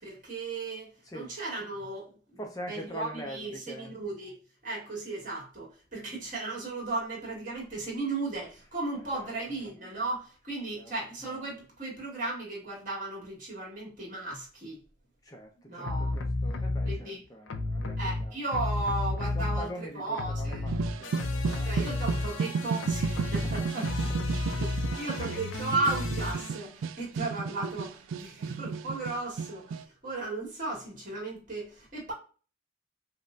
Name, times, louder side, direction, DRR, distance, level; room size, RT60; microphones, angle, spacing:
voice 1, 0.0-2.4 2.7-14.8 15.7-16.2 16.8-17.2 18.0-20.7 21.6-23.9 24.5-24.7 25.0-32.1, right 2 dB, 45° right, 1.8 m, -35 dB
voice 2, 2.4-3.9 9.1-9.4 10.8-10.9 15.2-15.9 16.2-18.4 19.3-22.0 23.4-23.9, equal, 20° left, 0.5 m, -43 dB
sound 1, 15.9-17.0 17.5-19.9 20.1-26.5, left 2 dB, 85° left, 0.5 m, -32 dB
sound 2, 20.7-29.8, right 5 dB, 85° right, 0.3 m, -33 dB
5.1 x 2.1 x 2.4 m
head